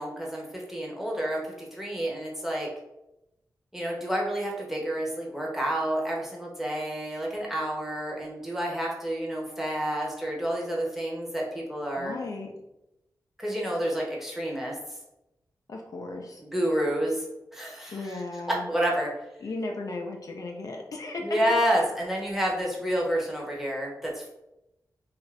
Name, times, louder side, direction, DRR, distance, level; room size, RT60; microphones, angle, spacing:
voice 1, 0.0-2.7 3.7-12.1 13.4-14.7 16.4-17.2 17.5-18.2 18.5-19.1 21.2-24.3, right 1 dB, 5° right, -3 dB, 0.8 m, -29 dB
voice 2, 12.0-12.5 15.7-16.4 17.9-18.7 19.4-21.4, left 2 dB, 55° left, 1 dB, 0.4 m, -35 dB
2.5 x 2.4 x 3.1 m, 0.89 s
wide cardioid pair, 100°, 7 cm